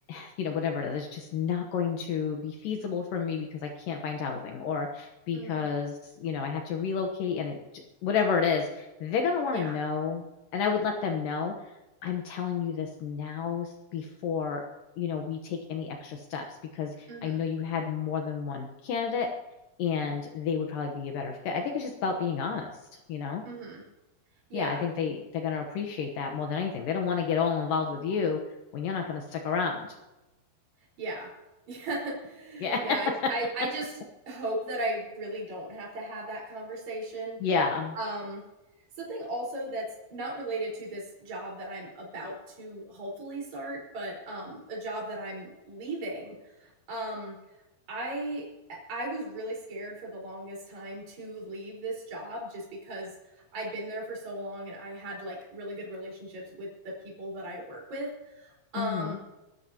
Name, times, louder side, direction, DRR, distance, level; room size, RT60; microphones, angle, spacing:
voice 1, 0.1-7.6 8.0-10.2 10.5-11.5 12.0-14.6 15.0-16.5 16.7-19.3 19.8-22.7 23.1-23.4 24.5-28.4 28.7-29.9 32.6-33.0 37.4-38.0 58.8-59.2, left 6 dB, 70° left, 3 dB, 2.6 m, -30 dB
voice 2, 5.3-5.7 9.5-9.7 17.1-17.4 23.5-23.8 24.5-24.8 31.0-31.3 31.7-33.9 34.3-37.4 38.0-38.4 39.0-47.4 47.9-53.1 53.5-59.2, right 1 dB, 50° right, -3 dB, 5.9 m, -37 dB
22.5 x 13.0 x 2.9 m, 1.0 s
omnidirectional pair, 4.3 m